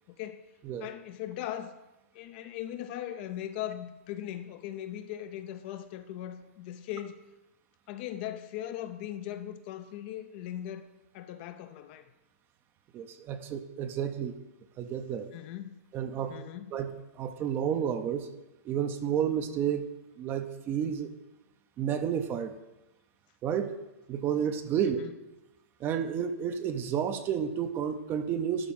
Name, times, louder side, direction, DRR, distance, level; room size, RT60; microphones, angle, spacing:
voice 1, 0.1-0.4 0.8-1.8 2.1-7.2 7.9-10.9 11.1-12.1 15.3-15.8 16.3-16.8 24.9-25.1, left 11 dB, 45° left, 10 dB, 0.6 m, -39 dB
voice 2, 12.9-14.3 14.8-15.3 15.9-16.4 16.7-18.3 18.6-19.9 20.2-21.1 21.8-22.5 23.4-23.8 24.1-25.0 25.8-28.7, right 8 dB, 25° right, 9 dB, 0.7 m, -31 dB
12.0 x 4.1 x 5.4 m, 1.0 s
hypercardioid pair, 130°, 8 cm